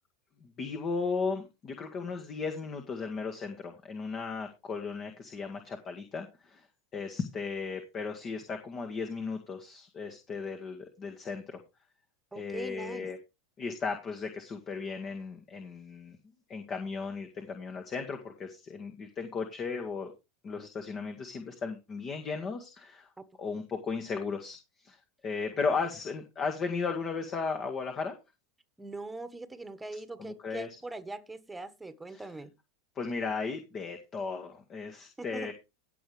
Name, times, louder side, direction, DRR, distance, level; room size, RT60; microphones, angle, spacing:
voice 1, 0.4-6.7 6.9-11.6 12.4-13.2 13.6-16.2 16.5-20.1 20.4-23.1 23.4-25.0 25.2-28.1 30.2-30.7 32.1-32.3 33.0-35.5, left 4 dB, 35° left, 2.0 m, -35 dB
voice 2, 12.3-13.1 23.2-23.3 28.8-32.5 35.2-35.5, right 2 dB, 10° right, 1.6 m, -42 dB
16.0 x 7.1 x 3.4 m
hypercardioid pair, 100°, 0 cm